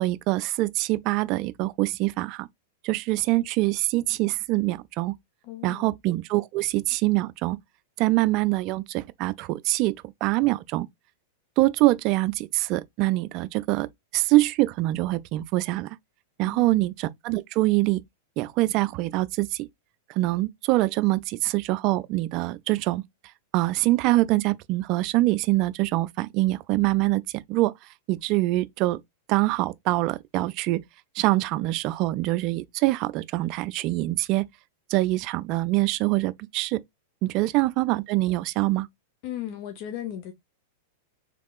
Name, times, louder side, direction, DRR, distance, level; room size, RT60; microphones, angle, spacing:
voice 1, 0.0-2.5 2.8-5.1 5.6-7.6 8.0-9.9 10.2-10.9 11.6-13.9 14.1-16.0 16.4-18.0 18.4-19.7 20.1-23.0 23.5-27.2 27.5-27.7 28.1-29.0 29.3-30.8 31.2-34.4 34.9-36.8 37.2-38.9, right 18 dB, 45° right, 0.3 m, -24 dB
voice 2, 5.4-5.9 16.4-16.8 39.2-40.3, left 11 dB, 50° left, 0.6 m, -36 dB
3.4 x 3.1 x 2.3 m
hypercardioid pair, 100°, 0 cm